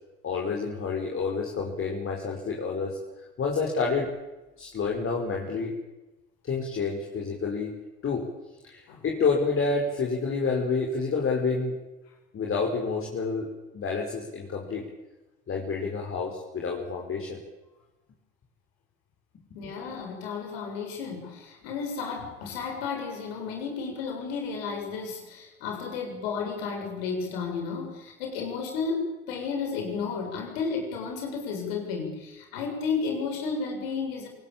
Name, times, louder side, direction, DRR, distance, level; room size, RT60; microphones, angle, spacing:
voice 1, 0.2-3.0 3.4-4.1 4.6-5.7 6.4-7.7 8.0-8.3 8.6-11.8 12.3-14.8 15.5-17.4 19.6-19.7, left 4 dB, 45° left, -1 dB, 5.3 m, -29 dB
voice 2, 19.5-34.3, left 5 dB, 75° left, 2 dB, 7.2 m, -32 dB
27.0 x 19.0 x 8.9 m, 1.1 s
hypercardioid pair, 55°, 30 cm